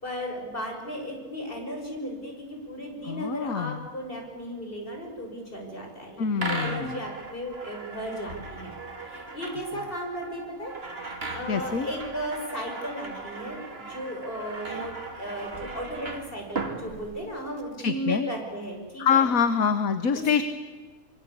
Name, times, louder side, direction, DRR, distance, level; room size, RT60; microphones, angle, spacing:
voice 1, 0.0-8.7 9.0-10.7 11.3-19.3 20.1-20.2, equal, 35° left, 2 dB, 6.2 m, -35 dB
voice 2, 3.1-3.8 6.2-7.0 11.5-11.9 17.8-18.3 19.0-20.4, left 6 dB, 65° left, 11 dB, 1.6 m, -25 dB
sound 1, 6.4-17.6, right 3 dB, 40° right, 2.8 m, -38 dB
25.0 x 25.0 x 8.6 m, 1.4 s
omnidirectional pair, 1.6 m